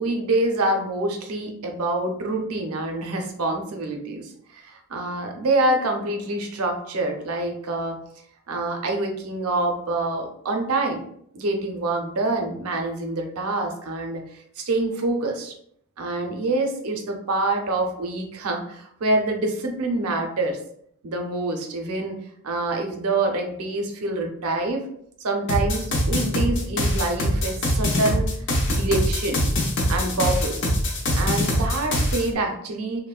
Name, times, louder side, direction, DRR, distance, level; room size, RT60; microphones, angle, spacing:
voice 1, 0.0-8.0 8.5-11.1 11.3-15.5 16.0-20.6 21.0-24.8 25.2-28.3 28.7-29.5 29.9-30.6 31.1-33.1, right 2 dB, 75° right, 3 dB, 0.5 m, -26 dB
sound 1, 25.5-32.3, equal, 55° left, 0.5 m, -23 dB
3.0 x 2.1 x 2.3 m, 0.68 s
head